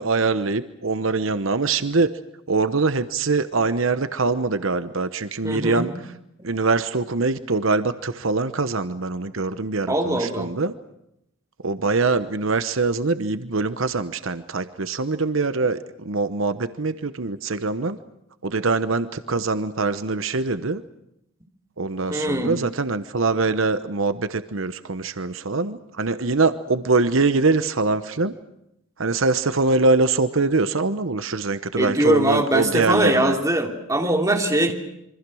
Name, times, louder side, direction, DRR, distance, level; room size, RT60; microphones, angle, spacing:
voice 1, 0.0-2.1 2.5-5.9 6.4-10.7 11.6-18.0 18.4-20.8 21.8-28.3 29.0-33.4, right 3 dB, 75° right, 12 dB, 1.0 m, -23 dB
voice 2, 5.4-5.9 9.9-10.5 22.1-22.5 31.7-34.7, right 1 dB, 15° right, 3 dB, 3.1 m, -21 dB
27.0 x 24.5 x 6.3 m, 0.81 s
head